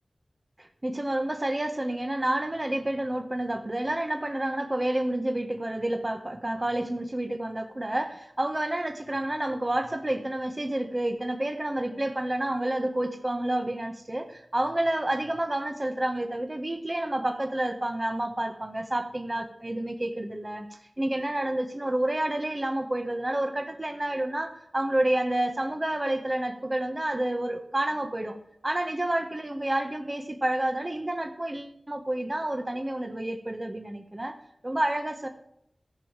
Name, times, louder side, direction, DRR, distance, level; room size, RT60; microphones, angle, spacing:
voice 1, 0.6-20.7 21.0-28.4 28.6-34.3 34.6-35.3, right 1 dB, 35° right, 5 dB, 1.4 m, -29 dB
14.0 x 5.5 x 7.4 m, 0.73 s
wide cardioid pair, 45°, 0 cm